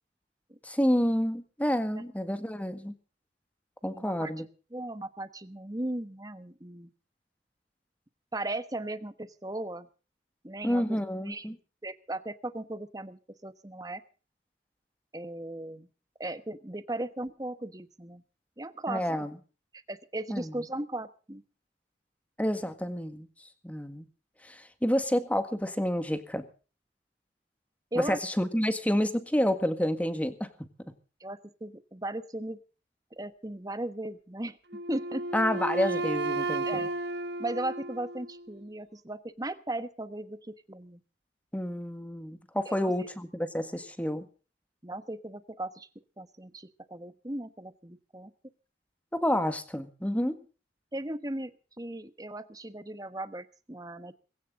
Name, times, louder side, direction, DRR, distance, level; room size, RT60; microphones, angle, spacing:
voice 1, 0.6-2.9 3.8-4.4 10.6-11.6 18.9-19.3 20.3-20.5 22.4-24.0 24.4-26.4 27.9-30.5 35.3-36.7 41.5-44.2 49.1-50.4, equal, 10° left, 10 dB, 1.7 m, -29 dB
voice 2, 3.8-4.3 4.7-6.9 8.3-9.9 10.4-11.5 11.8-14.0 15.1-15.9 16.2-18.2 18.6-19.0 19.9-21.4 27.9-28.2 31.2-32.6 33.2-34.6 34.9-35.3 36.6-36.9 37.4-41.0 42.7-42.9 44.8-45.9 46.2-48.3 50.9-51.5 51.8-54.1, right 1 dB, 20° right, 12 dB, 1.2 m, -37 dB
Wind instrument woodwind instrument, 34.7-38.6, right 2 dB, 65° right, 1.4 m, -33 dB
20.0 x 16.5 x 3.7 m, 0.37 s
head